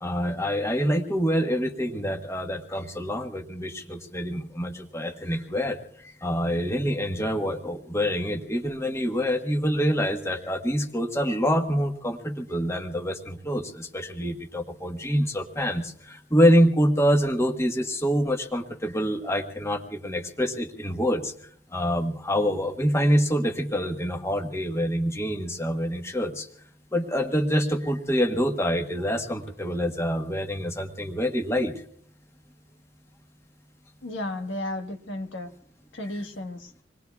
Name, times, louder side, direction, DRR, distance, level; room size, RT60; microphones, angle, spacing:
voice 1, 0.0-21.3 21.7-26.5 26.9-31.7, equal, 15° left, 3 dB, 1.3 m, -26 dB
voice 2, 34.0-35.5 35.9-36.7, left 1 dB, 85° left, 5 dB, 1.4 m, -33 dB
27.0 x 20.5 x 2.4 m, 0.62 s
head